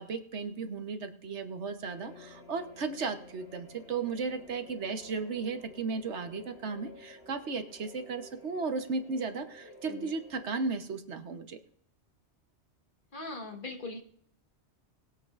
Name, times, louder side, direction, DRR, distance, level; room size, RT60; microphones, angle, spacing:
voice 1, 0.0-11.6, right 4 dB, 75° right, 7 dB, 1.3 m, -35 dB
sound 1, 1.8-10.7, left 2 dB, 65° left, 1.7 m, -53 dB
voice 2, 9.6-10.1 13.1-14.0, left 2 dB, 45° left, 2 dB, 1.6 m, -41 dB
21.0 x 8.0 x 2.5 m, 0.67 s
omnidirectional pair, 1.2 m